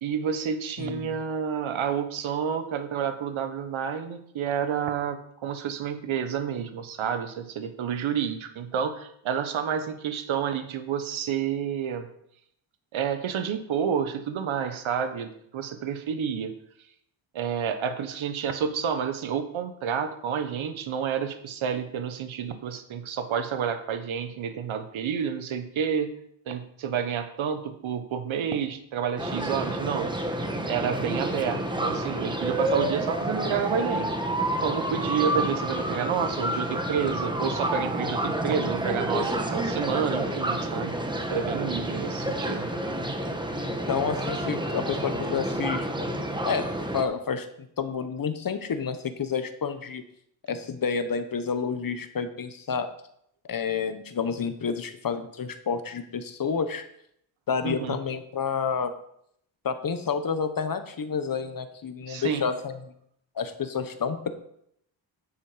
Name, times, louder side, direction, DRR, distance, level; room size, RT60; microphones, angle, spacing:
voice 1, 0.0-12.1 12.9-16.5 17.3-26.1 26.4-30.1 30.6-34.1 34.6-41.0 41.3-42.7 57.6-58.0 62.1-62.5, right 7 dB, 70° right, 8 dB, 1.5 m, -29 dB
voice 2, 0.8-1.1 43.9-46.1 46.4-46.7 46.9-50.0 50.5-52.9 53.5-56.8 57.5-58.9 59.6-62.9 63.3-64.3, left 6 dB, 45° left, 9 dB, 1.3 m, -29 dB
sound 1, 29.2-47.0, right 1 dB, 10° right, 1.4 m, -29 dB
10.5 x 7.6 x 5.2 m, 0.72 s
cardioid pair, 100°, 49 cm